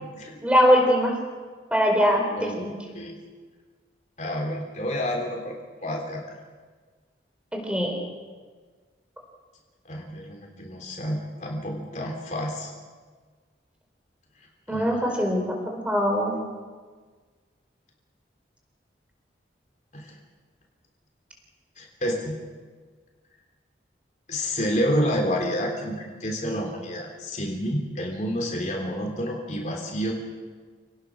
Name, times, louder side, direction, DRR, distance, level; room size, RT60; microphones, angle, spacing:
voice 1, 0.4-1.1 1.7-2.8 7.5-7.9 14.7-16.3, equal, 5° right, 1 dB, 4.6 m, -22 dB
voice 2, 2.4-3.2 4.2-5.6 5.8-6.4 9.9-12.7 14.7-15.2 19.9-20.2 21.8-22.4 24.3-30.1, equal, 40° left, 1 dB, 3.5 m, -29 dB
28.5 x 18.5 x 6.4 m, 1.5 s
head